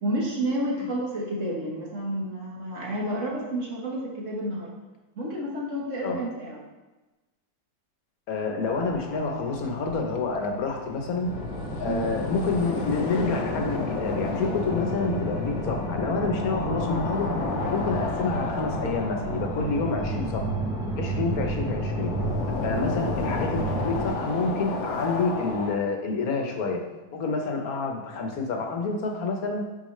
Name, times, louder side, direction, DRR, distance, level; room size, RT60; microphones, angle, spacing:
voice 1, 0.0-4.7 5.1-6.6 11.8-12.1, right 1 dB, 50° right, -3 dB, 1.4 m, -30 dB
voice 2, 8.3-11.3 11.8-17.3 17.7-20.5 21.0-22.1 22.6-26.8 27.1-29.7, left 3 dB, 65° left, 2 dB, 1.4 m, -28 dB
sound 1, 8.6-25.8, left 4 dB, 90° left, 1.3 m, -34 dB
sound 2, 11.3-24.1, right 1 dB, 5° right, 0.4 m, -31 dB
8.7 x 4.7 x 3.1 m, 1.2 s
omnidirectional pair, 1.7 m